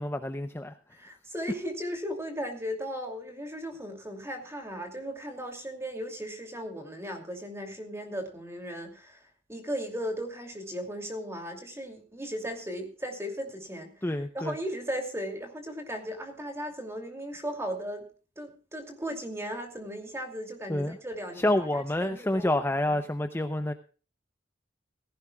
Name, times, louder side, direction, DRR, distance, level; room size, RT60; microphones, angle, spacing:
voice 1, 0.0-0.8 14.0-14.5 20.7-21.0 21.4-23.7, left 1 dB, 15° left, 9 dB, 0.6 m, -28 dB
voice 2, 0.9-18.1 18.4-21.4 22.0-22.9, equal, 15° right, 4 dB, 2.6 m, -37 dB
17.0 x 16.0 x 2.3 m, 0.38 s
head